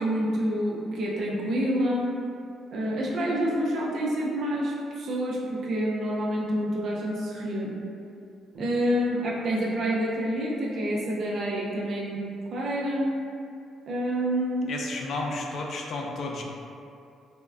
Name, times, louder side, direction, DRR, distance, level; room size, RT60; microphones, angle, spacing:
voice 1, 0.0-2.2 2.7-7.8 8.5-12.2 12.5-13.1 13.9-14.7, equal, 60° right, -4 dB, 0.4 m, -27 dB
voice 2, 14.7-16.4, left 2 dB, 55° left, 1 dB, 0.3 m, -32 dB
3.4 x 2.0 x 2.3 m, 2.5 s
cardioid pair, 110°, 0 cm